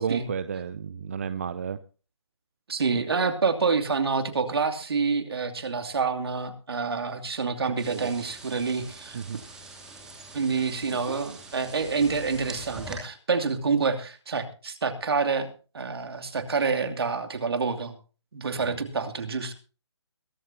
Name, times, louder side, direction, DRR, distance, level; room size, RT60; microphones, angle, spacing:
voice 1, 0.0-1.8 7.9-8.1 9.1-9.4 18.6-18.8, right 7 dB, 30° right, 14 dB, 0.6 m, -32 dB
voice 2, 2.7-9.2 10.3-17.9 18.3-19.5, right 5 dB, 60° right, 6 dB, 2.7 m, -27 dB
sound 1, 7.8-12.9, right 2 dB, 5° right, 2.7 m, -44 dB
22.5 x 12.5 x 2.8 m, 0.35 s
hypercardioid pair, 165°, 15 cm